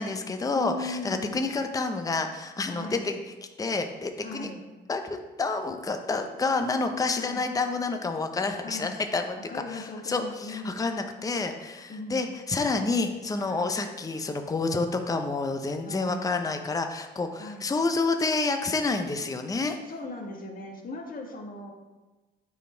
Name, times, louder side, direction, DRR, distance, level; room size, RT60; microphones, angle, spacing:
voice 1, 0.0-3.1 3.6-4.5 4.9-9.4 9.7-19.8, left 3 dB, 15° left, 6 dB, 0.6 m, -29 dB
voice 2, 0.5-1.3 2.7-3.2 4.2-4.6 7.1-7.5 8.6-9.0 9.5-10.8 11.9-12.3 13.4-13.7 15.8-16.3 17.4-17.7 19.8-21.7, left 2 dB, 45° left, 1 dB, 1.5 m, -38 dB
8.9 x 4.3 x 4.4 m, 1.2 s
cardioid pair, 90°, 20 cm